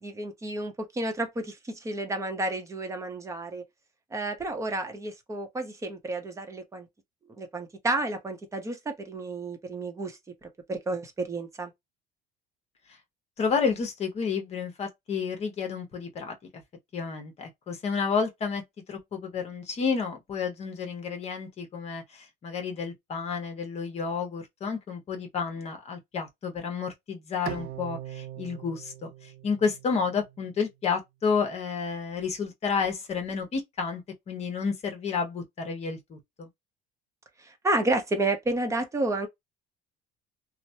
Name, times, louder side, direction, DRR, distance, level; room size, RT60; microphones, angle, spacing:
voice 1, 0.0-3.6 4.1-6.9 7.4-11.7 37.4-39.3, right 2 dB, 15° right, 0.8 m, -31 dB
voice 2, 13.4-16.4 16.9-18.6 18.9-34.0 34.3-36.5, left 5 dB, 35° left, 1.1 m, -31 dB
Bowed string instrument, 27.5-30.7, right 13 dB, 55° right, 0.4 m, -41 dB
3.1 x 2.1 x 2.7 m
cardioid pair, 145°, 19 cm